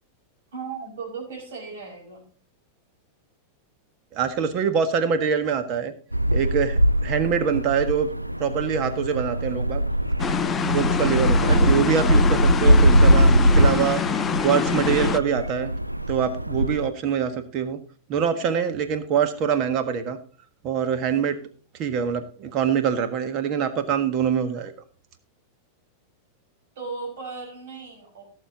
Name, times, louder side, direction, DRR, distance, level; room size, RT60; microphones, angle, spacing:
voice 1, 0.5-2.3 26.8-28.2, right 4 dB, 55° right, 0 dB, 5.7 m, -36 dB
voice 2, 4.1-5.9 6.3-8.1 8.4-9.8 10.6-14.0 14.4-15.7 16.1-17.8 18.1-20.2 20.6-21.4 21.8-24.7, right 7 dB, 40° right, 9 dB, 1.5 m, -24 dB
sound 1, 6.1-16.9, equal, 90° right, 0.5 m, -21 dB
sound 2, 10.2-15.2, left 7 dB, 20° left, 0.4 m, -26 dB
17.0 x 6.7 x 3.9 m, 0.39 s
figure-of-eight pair, 90°, 0 cm